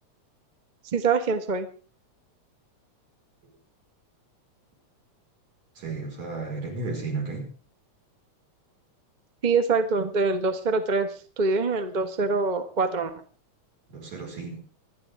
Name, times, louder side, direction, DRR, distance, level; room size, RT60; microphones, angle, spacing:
voice 1, 0.9-1.7 9.4-11.1 11.4-13.1, right 4 dB, 45° right, 8 dB, 0.5 m, -24 dB
voice 2, 5.8-7.5 13.9-14.6, right 3 dB, 70° right, 0 dB, 6.1 m, -33 dB
26.0 x 11.0 x 3.6 m, 0.37 s
omnidirectional pair, 3.3 m